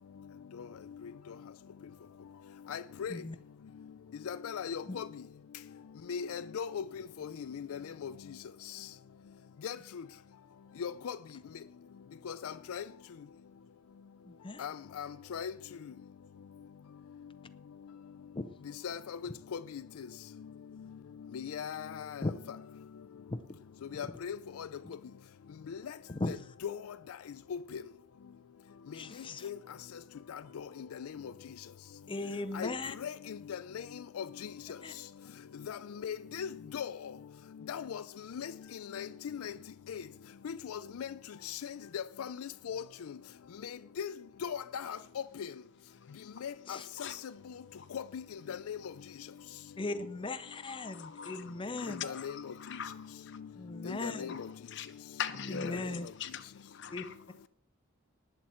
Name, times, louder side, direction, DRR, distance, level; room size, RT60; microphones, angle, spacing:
voice 1, 2.7-3.1 4.3-5.1 6.1-6.8 7.2-8.1 9.6-9.8 10.8-11.2 12.3-12.8 14.6-15.5 18.8-19.2 19.5-19.8 21.3-22.3 23.9-24.7 25.7-25.8 26.3-26.4 26.6-26.8 27.5-27.8 29.4-29.6 30.3-30.6 31.0-31.1 32.5-32.7 33.0-33.8 34.2-34.5 35.7-37.0 37.7-38.0 38.3-38.5 38.9-39.5 39.9-40.0 40.4-41.1 41.4-42.8 44.0-44.1 44.4-45.0 45.4-45.5 46.4-47.1 47.9-48.2 48.5-48.8 51.9-52.4 53.8-54.5, left 7 dB, 85° left, 0.4 m, -38 dB
voice 2, 14.2-14.6 18.3-18.5 22.2-22.3 23.3-23.4 26.2-26.4 28.9-29.5 32.1-32.9 34.8-34.9 46.7-46.9 49.8-52.0 53.6-54.3 55.5-56.1 56.9-57.0, left 2 dB, 25° left, 0.5 m, -37 dB
voice 3, 50.7-51.5 51.8-53.0 54.3-54.4 54.7-54.9 55.2-56.4 56.7-57.1, left 7 dB, 55° left, 1.0 m, -41 dB
19.5 x 7.5 x 4.3 m
head